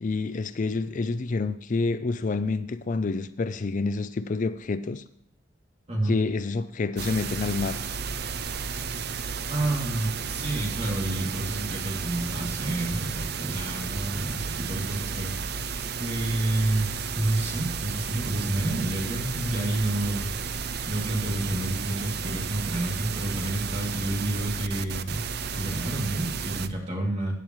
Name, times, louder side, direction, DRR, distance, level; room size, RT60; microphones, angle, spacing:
voice 1, 0.0-5.0 6.0-7.8, left 3 dB, 45° left, 0.4 m, -28 dB
sound 1, 7.0-26.7, right 5 dB, 60° right, 0.5 m, -33 dB
voice 2, 9.5-15.3 16.0-20.2 20.9-25.2 25.5-27.3, right 1 dB, 35° right, 2.7 m, -29 dB
15.5 x 9.1 x 3.1 m
head